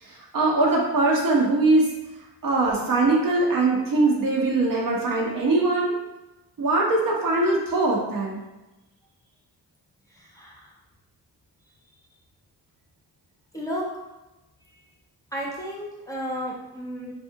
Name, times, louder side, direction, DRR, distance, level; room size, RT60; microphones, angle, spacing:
voice 1, 0.0-1.9 2.4-5.9 6.6-8.4, right 2 dB, 55° right, -2 dB, 0.9 m, -22 dB
voice 2, 10.3-10.7 13.5-13.8 15.3-17.1, equal, 10° left, -4 dB, 0.7 m, -32 dB
2.6 x 2.4 x 2.7 m, 1.0 s
cardioid pair, 65°, 39 cm